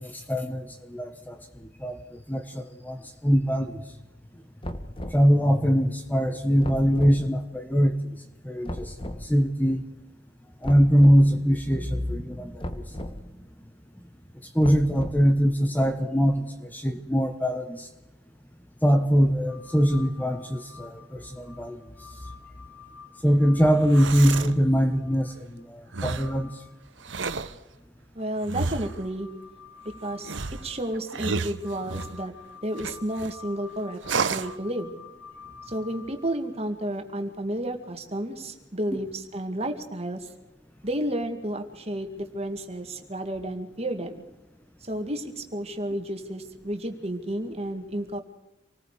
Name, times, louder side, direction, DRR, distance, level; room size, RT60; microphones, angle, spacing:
voice 1, 0.0-1.4 1.8-2.0 2.3-3.0 3.2-3.8 5.1-8.0 8.4-8.9 9.2-9.8 10.6-12.6 14.5-17.9 18.8-21.8 23.2-26.5, equal, 10° left, 6 dB, 1.1 m, -22 dB
sound 1, 4.6-5.3 6.6-7.2 8.7-9.2 10.6-11.2 12.6-13.2 14.6-15.4, equal, 30° left, 1.4 m, -35 dB
sound 2, 19.5-25.3 25.8-26.7 27.0-27.1 28.2-36.6 38.7-38.8, left 6 dB, 70° left, 6.4 m, -49 dB
sound 3, 23.7-24.6 25.9-26.4 27.0-27.6 28.5-29.1 30.2-32.2 32.8-33.3 34.0-34.6, right 4 dB, 80° right, 1.0 m, -31 dB
voice 2, 28.1-29.3 30.0-30.4 30.6-32.3 32.6-34.0 34.3-34.9 35.7-40.3 40.8-44.2 44.8-48.2, right 1 dB, 35° right, 6 dB, 2.2 m, -31 dB
27.5 x 19.5 x 5.0 m, 0.95 s
head